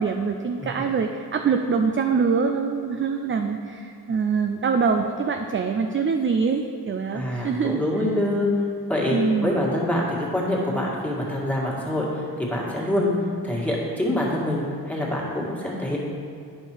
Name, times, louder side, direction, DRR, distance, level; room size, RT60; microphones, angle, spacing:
voice 1, 0.0-7.8 9.1-9.6, right 5 dB, 30° right, 4 dB, 0.4 m, -24 dB
voice 2, 7.1-8.5 8.9-13.1 13.4-16.0, left 1 dB, 5° left, -5 dB, 1.9 m, -25 dB
9.5 x 5.5 x 4.5 m, 2.3 s
cardioid pair, 90°, 42 cm